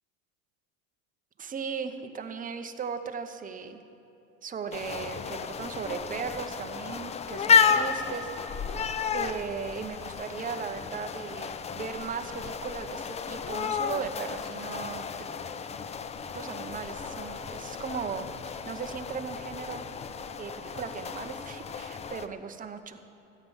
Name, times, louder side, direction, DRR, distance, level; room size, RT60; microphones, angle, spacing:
voice 1, 1.4-3.8 4.4-8.8 9.1-15.1 16.3-19.8 20.4-23.0, right 6 dB, 20° right, 7 dB, 0.8 m, -37 dB
sound 1, 4.7-22.3, left 6 dB, 20° left, 0.4 m, -32 dB
13.5 x 8.5 x 5.5 m, 2.9 s
supercardioid pair, 95°, 37 cm